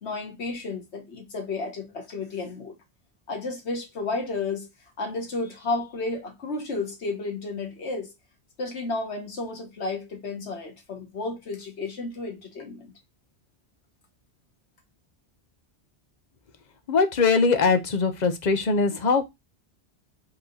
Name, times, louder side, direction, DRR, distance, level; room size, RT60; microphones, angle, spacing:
voice 1, 0.0-2.8 3.3-4.7 5.0-8.1 8.6-12.9, left 3 dB, 85° left, 1.5 m, -32 dB
voice 2, 16.9-19.3, left 4 dB, 45° left, 0.8 m, -21 dB
4.7 x 2.8 x 3.8 m
omnidirectional pair, 1.1 m